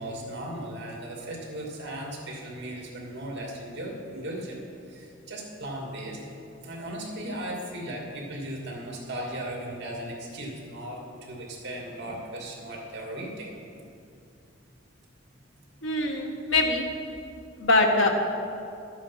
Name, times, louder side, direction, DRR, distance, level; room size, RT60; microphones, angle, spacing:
voice 1, 0.0-4.6 4.9-6.2 6.6-13.6, right 1 dB, 60° right, -1 dB, 2.5 m, -37 dB
voice 2, 15.8-16.8 17.6-18.1, left 2 dB, 70° left, 2 dB, 1.4 m, -23 dB
12.0 x 8.8 x 5.6 m, 2.5 s
head